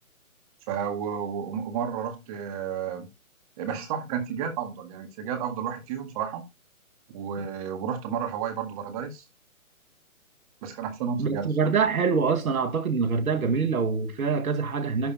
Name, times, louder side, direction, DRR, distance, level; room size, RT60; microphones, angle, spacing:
voice 1, 0.7-3.1 3.6-6.5 7.1-9.3 10.6-11.7, right 7 dB, 25° right, 1.8 m, -32 dB
voice 2, 11.2-15.1, right 5 dB, 80° right, 2.0 m, -25 dB
11.5 x 4.0 x 4.1 m
hypercardioid pair, 150°, 42 cm